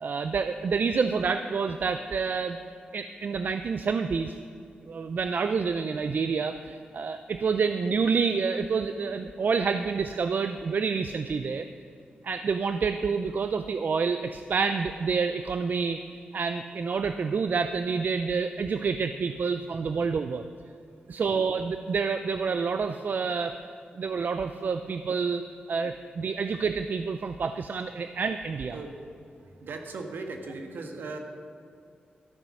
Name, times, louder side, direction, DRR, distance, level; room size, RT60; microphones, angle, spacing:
voice 1, 0.0-2.6 2.9-4.3 4.9-11.7 12.2-16.0 16.3-20.4 21.1-23.6 24.0-25.4 25.7-28.8, right 5 dB, 60° right, 9 dB, 0.5 m, -28 dB
voice 2, 29.4-31.2, right 3 dB, 80° right, 4 dB, 1.4 m, -38 dB
13.0 x 9.1 x 6.2 m, 2.5 s
cardioid pair, 60°, 3 cm